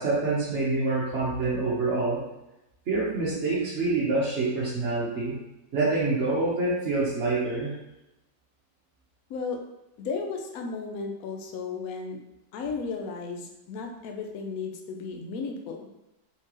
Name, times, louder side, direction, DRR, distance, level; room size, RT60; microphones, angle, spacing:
voice 1, 0.0-2.2 2.9-5.3 5.7-7.7, right 3 dB, 45° right, -9 dB, 1.1 m, -26 dB
voice 2, 9.3-9.6 10.0-12.2 12.5-15.8, left 4 dB, 65° left, 3 dB, 1.0 m, -34 dB
4.3 x 4.0 x 3.0 m, 0.93 s
omnidirectional pair, 1.9 m